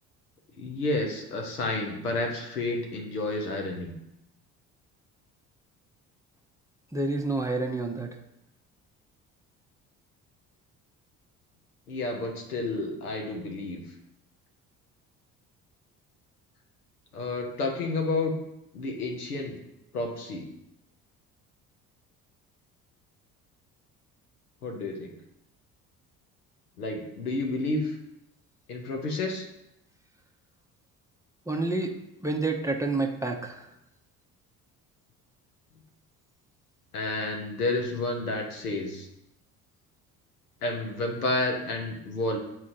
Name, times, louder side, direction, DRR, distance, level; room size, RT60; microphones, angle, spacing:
voice 1, 0.6-3.9 11.9-13.8 17.1-18.3 18.7-19.6 19.9-20.5 24.6-25.1 26.8-28.0 28.7-29.4 36.9-39.1 40.6-42.4, left 2 dB, 85° left, 1 dB, 0.9 m, -30 dB
voice 2, 6.9-8.1 31.5-32.0 32.2-33.7, right 2 dB, 5° right, 2 dB, 0.7 m, -28 dB
8.3 x 4.4 x 2.6 m, 0.84 s
figure-of-eight pair, 50°, 44 cm